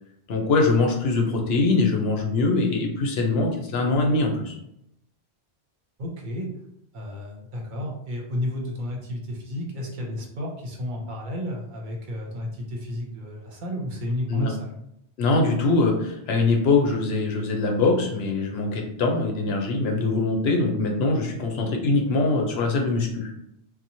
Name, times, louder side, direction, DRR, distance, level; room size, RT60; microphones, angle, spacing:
voice 1, 0.3-4.6 14.3-14.5 15.2-23.3, left 3 dB, 75° left, 1 dB, 0.9 m, -23 dB
voice 2, 6.0-6.5 6.9-14.8, left 1 dB, 55° right, 0 dB, 0.7 m, -32 dB
2.9 x 2.1 x 2.6 m, 0.79 s
omnidirectional pair, 1.1 m